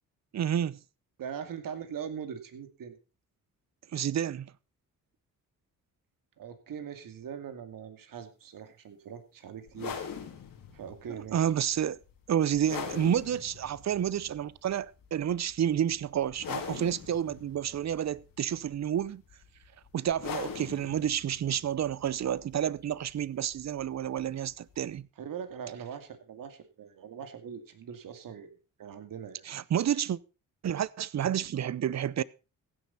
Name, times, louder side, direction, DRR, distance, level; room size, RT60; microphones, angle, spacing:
voice 1, 0.3-0.8 3.9-4.5 11.1-12.0 12.3-19.2 19.9-25.1 29.5-30.2 30.6-32.2, right 10 dB, 50° right, 0.7 m, -30 dB
voice 2, 1.2-3.0 6.4-10.0 10.7-11.5 25.2-29.5, right 8 dB, 75° right, 2.4 m, -41 dB
sound 1, 9.7-25.0, left 7 dB, 75° left, 2.9 m, -44 dB
16.0 x 9.7 x 4.2 m
cardioid pair, 80°, 34 cm